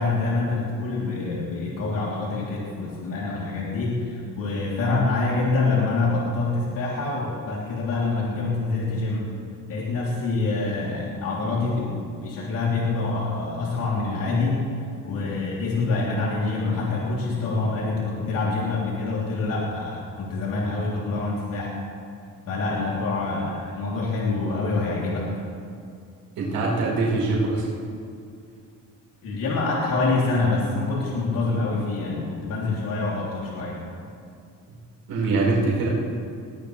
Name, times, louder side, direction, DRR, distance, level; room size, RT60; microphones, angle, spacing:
voice 1, 0.0-9.3 9.7-11.9 12.2-14.6 15.0-21.8 22.5-25.3 29.2-33.7, left 3 dB, 75° left, -5 dB, 3.4 m, -26 dB
voice 2, 26.4-27.6 35.1-35.9, right 3 dB, 85° right, -5 dB, 4.7 m, -23 dB
20.5 x 17.0 x 3.4 m, 2.4 s
cardioid pair, 120°, 33 cm